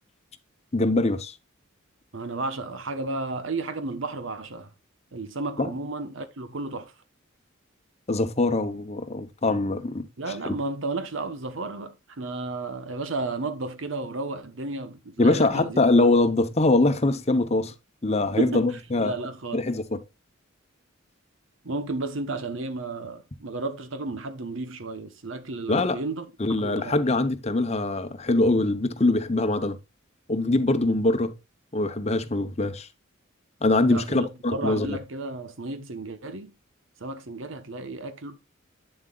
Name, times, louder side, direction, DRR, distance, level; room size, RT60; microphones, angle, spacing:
voice 1, 0.7-1.3 5.6-5.7 8.1-10.1 10.5-10.6 15.2-17.7 18.0-19.1 19.5-20.0 25.7-26.0 26.4-29.8 30.3-31.3 31.7-32.9 33.6-35.0, left 2 dB, 30° left, 0.9 m, -23 dB
voice 2, 2.1-4.7 5.1-6.9 10.2-15.8 18.4-18.7 19.0-19.7 21.6-26.3 26.6-27.0 33.8-36.5 37.0-38.4, right 3 dB, 70° right, 1.0 m, -33 dB
8.9 x 7.7 x 2.4 m
head